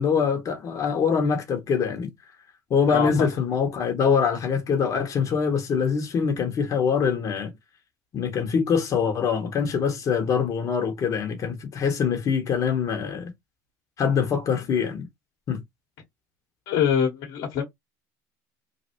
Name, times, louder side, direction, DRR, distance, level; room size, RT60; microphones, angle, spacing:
voice 1, 0.0-2.1 2.7-7.5 8.1-13.3 14.0-15.1 15.5-15.6, left 6 dB, 45° left, 1.0 m, -24 dB
voice 2, 2.9-3.3 16.7-17.7, left 7 dB, 70° left, 1.2 m, -24 dB
3.2 x 2.3 x 2.9 m
supercardioid pair, 100°, 8 cm